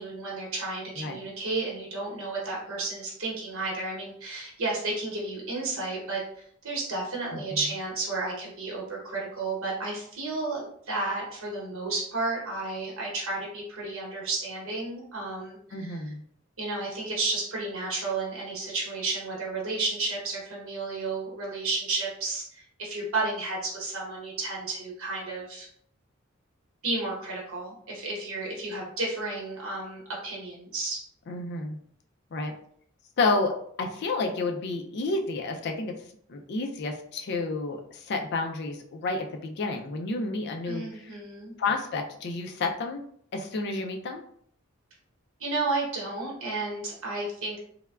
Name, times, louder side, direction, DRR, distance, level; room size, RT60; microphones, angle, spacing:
voice 1, 0.0-6.2 6.6-16.0 16.6-25.7 26.8-31.0 40.7-41.5 45.4-47.6, right 3 dB, 75° right, -3 dB, 0.9 m, -32 dB
voice 2, 15.7-16.2 31.3-31.8 32.3-32.5 33.2-35.9 36.3-41.2 41.6-43.0 43.3-44.2, left 3 dB, 50° left, 3 dB, 0.4 m, -30 dB
3.3 x 2.1 x 2.3 m, 0.63 s
head